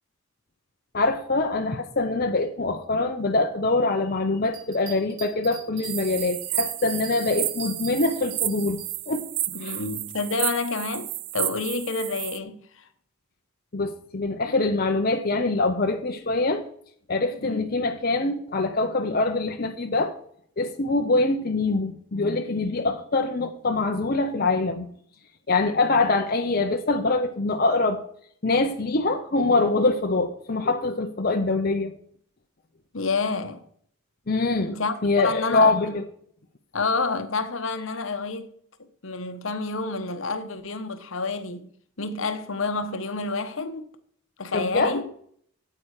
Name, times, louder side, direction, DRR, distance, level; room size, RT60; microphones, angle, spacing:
voice 1, 0.9-8.8 9.1-9.3 9.6-9.8 13.7-16.6 17.1-20.1 20.6-24.9 25.5-28.0 28.4-31.9 34.3-34.8 35.0-36.0 44.5-45.0, left 3 dB, 45° left, 0.8 m, -24 dB
Bell, 4.4-8.9 9.4-9.5, right 5 dB, 65° right, 4.1 m, -42 dB
sound 1, 5.8-12.4, right 15 dB, 85° right, 0.6 m, -32 dB
voice 2, 9.5-12.9 17.4-17.6 32.9-33.6 34.7-36.0 36.7-38.5 39.0-41.7 42.0-43.9 44.4-45.1, left 3 dB, 65° left, 1.1 m, -29 dB
12.5 x 8.6 x 4.8 m
head